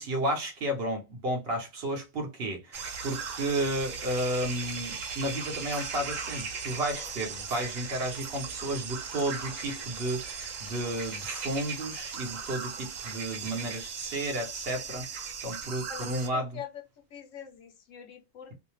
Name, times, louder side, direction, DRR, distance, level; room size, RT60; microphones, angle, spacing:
voice 1, 0.0-16.6, right 1 dB, 55° right, 0.9 m, -32 dB
sound 1, 2.7-16.3, right 6 dB, 80° right, 1.0 m, -38 dB
voice 2, 15.9-16.3 16.5-16.7 17.1-18.5, left 8 dB, 80° left, 1.1 m, -43 dB
2.6 x 2.1 x 3.0 m
omnidirectional pair, 1.3 m